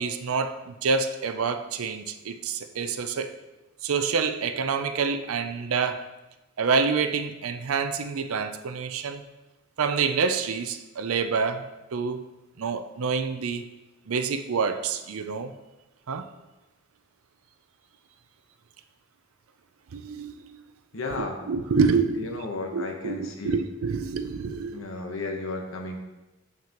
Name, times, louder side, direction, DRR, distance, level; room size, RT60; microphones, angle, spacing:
voice 1, 0.0-3.4 3.8-6.0 6.6-9.2 9.8-12.2 12.6-13.6 14.1-15.5 16.1-16.3 19.9-20.6 21.5-22.4 22.7-24.9, right 5 dB, 75° right, 9 dB, 0.5 m, -27 dB
voice 2, 20.9-21.4 22.2-23.6 24.7-26.0, left 2 dB, 65° left, 2 dB, 1.0 m, -33 dB
7.3 x 5.9 x 2.9 m, 1.0 s
head